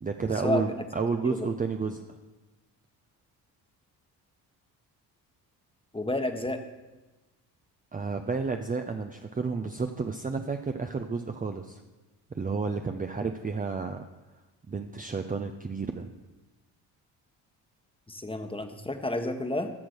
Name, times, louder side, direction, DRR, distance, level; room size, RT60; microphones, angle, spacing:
voice 1, 0.0-2.2 7.9-11.8 12.3-14.0 14.7-16.1, right 4 dB, 20° right, 5 dB, 0.6 m, -31 dB
voice 2, 5.9-6.6 18.1-19.7, left 2 dB, 10° left, 7 dB, 1.3 m, -30 dB
13.5 x 6.2 x 4.5 m, 1.2 s
hypercardioid pair, 50°, 47 cm